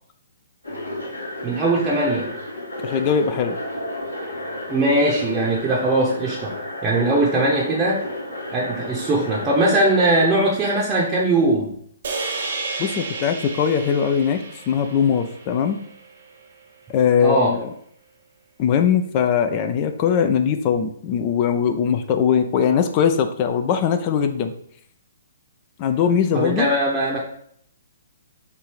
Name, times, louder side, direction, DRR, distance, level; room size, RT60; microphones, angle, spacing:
sound 1, 0.6-10.3, left 1 dB, 85° left, 1.2 m, -32 dB
voice 1, 1.4-2.3 4.7-6.5 6.8-8.0 8.5-11.7 17.2-17.5 26.3-27.2, right 2 dB, 20° right, -5 dB, 0.8 m, -20 dB
voice 2, 2.8-3.6 12.8-15.8 16.9-17.7 18.6-24.5 25.8-26.7, left 7 dB, 35° left, 7 dB, 0.4 m, -20 dB
sound 2, 12.0-16.5, right 3 dB, 55° right, 0.7 m, -32 dB
3.3 x 2.6 x 4.5 m, 0.66 s
figure-of-eight pair, 125°, 0 cm